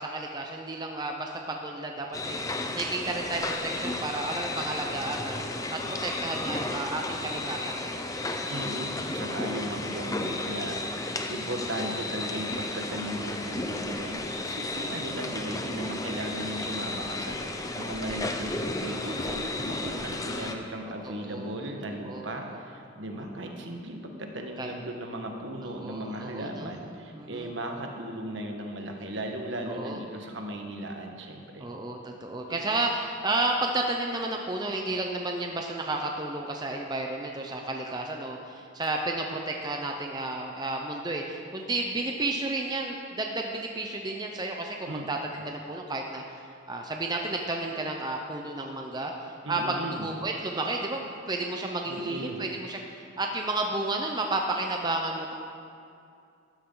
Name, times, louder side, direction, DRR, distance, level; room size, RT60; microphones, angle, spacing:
voice 1, 0.0-5.4 5.7-8.1 21.0-21.6 22.0-22.3 23.2-23.6 24.6-24.7 25.6-26.7 27.2-27.5 29.7-30.0 31.6-46.2 46.7-49.1 49.5-55.3, right 2 dB, 20° right, 2 dB, 0.7 m, -32 dB
sound 1, 2.1-20.5, left 2 dB, 15° left, 0.6 m, -33 dB
voice 2, 8.5-31.7 32.5-32.6 44.9-45.1 49.4-50.1 51.9-52.4, right 1 dB, 65° right, 3 dB, 1.4 m, -36 dB
13.0 x 13.0 x 3.9 m, 2.5 s
head